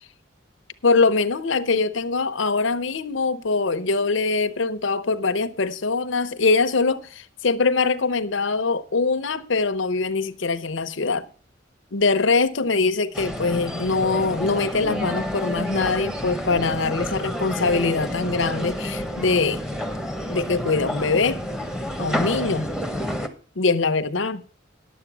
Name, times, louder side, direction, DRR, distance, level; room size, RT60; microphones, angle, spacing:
voice 1, 0.8-11.3 11.9-19.6 20.3-21.4 22.0-22.7 23.6-24.4, left 4 dB, 75° left, 0.8 m, -23 dB
sound 1, 13.1-23.3, equal, 5° right, 0.9 m, -29 dB
11.0 x 7.6 x 6.1 m
head